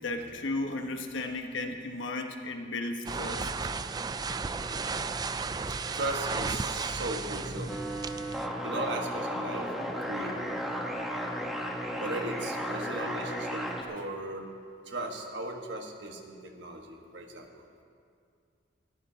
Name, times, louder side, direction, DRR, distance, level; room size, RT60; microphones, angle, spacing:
voice 1, 0.0-3.7 4.6-4.7 5.8-5.9, left 2 dB, 90° left, 4 dB, 1.2 m, -35 dB
sound 1, 3.1-8.5, right 4 dB, 20° right, 0.3 m, -34 dB
voice 2, 5.9-8.3 8.6-9.7 10.1-10.4 12.0-14.4 14.8-17.6, right 1 dB, 70° right, 2 dB, 1.5 m, -37 dB
sound 2, 7.7-13.8, equal, ahead, 1.1 m, -34 dB
20.5 x 14.5 x 2.9 m, 2.3 s
head